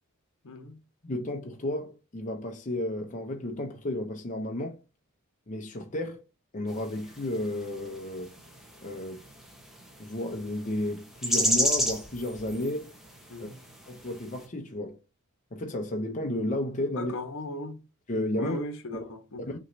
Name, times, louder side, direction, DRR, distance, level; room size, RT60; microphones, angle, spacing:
voice 1, 0.4-0.8 13.3-13.6 16.9-17.8 18.4-19.6, left 1 dB, 60° left, 1.0 m, -37 dB
voice 2, 1.0-4.8 5.5-6.2 6.5-8.3 8.8-9.2 10.0-12.9 13.4-13.5 13.9-15.0 15.5-17.1 18.1-18.6 18.9-19.1 19.4-19.6, left 1 dB, 35° left, 0.7 m, -32 dB
sound 1, 6.7-14.4, equal, ahead, 1.0 m, -33 dB
6.2 x 3.0 x 2.7 m
head